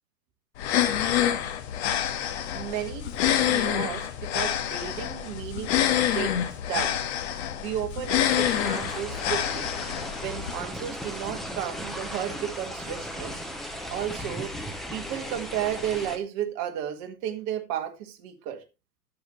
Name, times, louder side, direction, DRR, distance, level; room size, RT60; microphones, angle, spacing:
sound 1, 0.6-10.5, left 10 dB, 40° left, 1.5 m, -27 dB
voice 1, 2.5-5.8 6.1-6.3 6.7-7.0 7.6-9.7 10.2-13.4 13.9-14.5 14.9-18.6, right 10 dB, 35° right, 1.6 m, -33 dB
sound 2, 8.3-16.2, equal, ahead, 0.5 m, -36 dB
10.0 x 7.9 x 3.0 m
hypercardioid pair, 120°, 48 cm